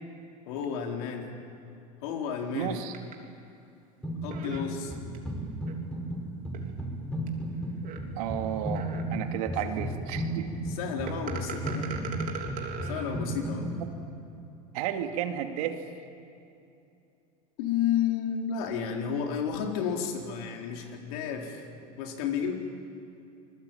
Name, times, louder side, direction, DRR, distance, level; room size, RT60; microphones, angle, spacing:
voice 1, 0.5-1.3 2.0-2.8 4.2-4.9 9.6-9.9 10.7-12.0 12.8-13.8 17.6-22.5, left 7 dB, 70° left, 2 dB, 4.0 m, -32 dB
voice 2, 2.5-2.9 8.2-10.5 14.7-15.8, right 10 dB, 70° right, 6 dB, 2.3 m, -32 dB
sound 1, 2.9-3.1 4.3-5.2 5.7-5.8 6.5-6.6 7.3-7.4 7.8-8.0 8.7-9.2 11.1-13.1, right 7 dB, 45° right, 3.5 m, -39 dB
sound 2, 4.0-4.7 4.9-13.8, right 1 dB, 5° left, 6.4 m, -34 dB
26.5 x 20.0 x 9.0 m, 2.6 s
hypercardioid pair, 100°, 20 cm